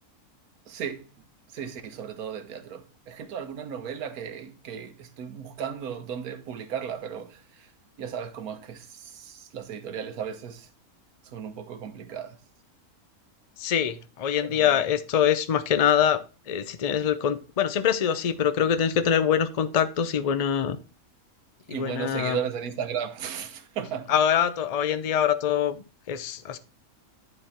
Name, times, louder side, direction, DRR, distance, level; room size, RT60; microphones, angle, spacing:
voice 1, 0.7-1.2 1.5-7.7 8.0-10.7 11.2-12.4 14.4-14.8 21.7-24.1, right 8 dB, 75° right, 1.4 m, -35 dB
voice 2, 13.6-16.2 16.5-20.8 21.7-22.4 24.1-26.6, left 9 dB, 65° left, 0.3 m, -24 dB
11.0 x 4.3 x 4.3 m
omnidirectional pair, 1.6 m